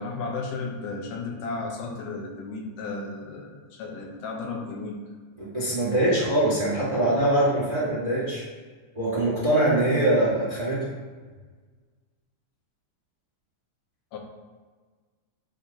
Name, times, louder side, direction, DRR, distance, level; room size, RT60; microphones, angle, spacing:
voice 1, 0.0-5.0 14.1-14.2, left 3 dB, 75° left, 1 dB, 2.1 m, -34 dB
voice 2, 5.4-8.4 8.9-10.8, right 1 dB, 65° right, -8 dB, 0.4 m, -23 dB
9.9 x 4.3 x 2.8 m, 1.5 s
omnidirectional pair, 4.2 m